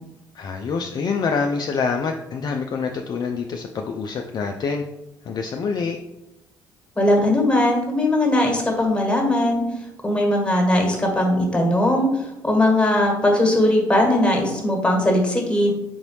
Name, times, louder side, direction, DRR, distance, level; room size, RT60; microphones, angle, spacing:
voice 1, 0.3-4.8 5.2-6.0, left 5 dB, 40° left, 3 dB, 0.4 m, -26 dB
voice 2, 6.9-9.6 10.0-12.1 12.4-15.7, left 1 dB, 10° left, 1 dB, 1.3 m, -19 dB
3.9 x 3.8 x 3.1 m, 0.91 s
figure-of-eight pair, 45°, 11 cm